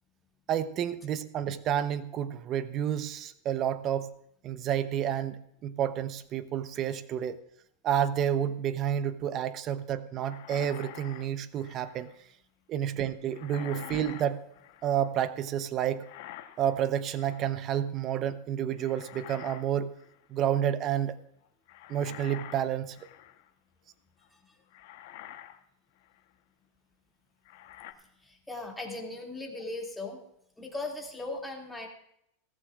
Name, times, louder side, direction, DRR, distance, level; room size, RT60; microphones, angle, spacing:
voice 1, 0.5-4.1 4.4-7.4 7.8-12.1 12.7-14.4 14.8-16.1 16.6-19.9 20.3-21.2 21.9-23.0, right 9 dB, 35° right, 13 dB, 0.8 m, -30 dB
sound 1, 10.2-12.2 13.3-15.1 16.0-16.8 17.1-17.6 18.8-19.7 20.0-20.2 21.7-23.5 24.2-24.3 24.7-25.6 26.0-26.2 27.5-27.9, left 13 dB, 65° left, 1.1 m, -47 dB
voice 2, 28.2-30.2 30.6-31.9, left 2 dB, 5° left, -1 dB, 2.5 m, -38 dB
17.5 x 14.5 x 2.5 m, 0.75 s
supercardioid pair, 135°, 0 cm